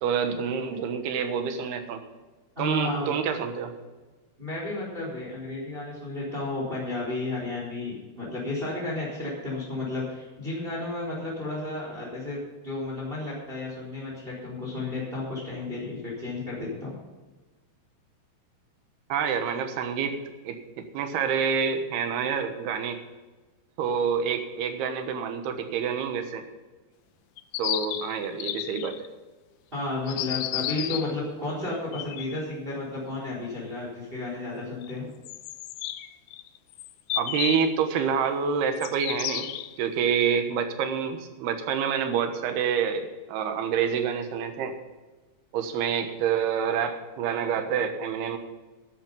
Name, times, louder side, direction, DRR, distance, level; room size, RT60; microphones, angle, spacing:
voice 1, 0.0-2.0 2.6-3.7 19.1-20.1 20.4-23.0 23.8-26.4 27.6-29.1 37.2-39.5 39.8-44.8 45.5-48.4, right 7 dB, 80° right, 7 dB, 3.3 m, -27 dB
voice 2, 2.6-3.1 4.4-12.4 12.6-16.9 29.7-35.1, left 2 dB, 15° right, -4 dB, 4.0 m, -32 dB
sound 1, 27.4-29.1 30.1-31.1 31.8-32.4 34.8-34.9 35.2-37.7 38.8-39.9, left 13 dB, 90° left, 2.7 m, -33 dB
12.0 x 11.0 x 5.4 m, 1.2 s
omnidirectional pair, 4.6 m